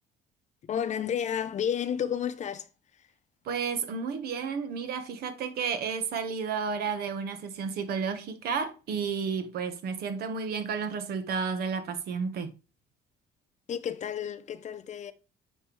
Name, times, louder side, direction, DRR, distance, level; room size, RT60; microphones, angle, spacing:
voice 1, 0.6-2.7 3.0-3.1 13.7-15.1, left 8 dB, 45° left, 0.7 m, -31 dB
voice 2, 3.4-12.5, right 6 dB, 70° right, 1.4 m, -32 dB
9.6 x 4.5 x 3.3 m
cardioid pair, 110°, 17 cm